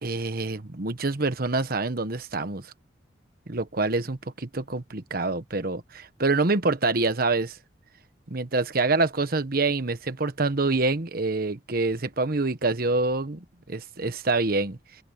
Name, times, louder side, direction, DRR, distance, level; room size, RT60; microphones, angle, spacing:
voice 1, 0.0-2.7 3.5-7.6 8.3-14.8, right 3 dB, 55° right, 1.3 m, -26 dB
open air
head